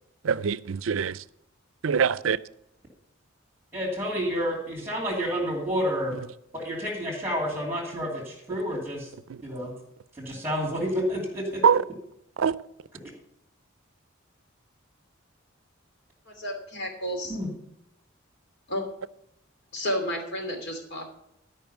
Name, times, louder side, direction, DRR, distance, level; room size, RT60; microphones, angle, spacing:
voice 1, 0.2-1.2 1.8-2.4 9.3-9.4 11.6-11.8 12.4-12.6, right 6 dB, 75° right, 18 dB, 0.5 m, -23 dB
voice 2, 3.7-6.1 6.5-9.1 9.4-9.7 10.2-11.6 17.3-17.5, equal, 10° right, -6 dB, 3.0 m, -29 dB
voice 3, 16.3-17.4 18.7-18.8 19.7-21.1, equal, 55° left, 3 dB, 2.8 m, -31 dB
13.0 x 5.6 x 7.0 m, 0.76 s
head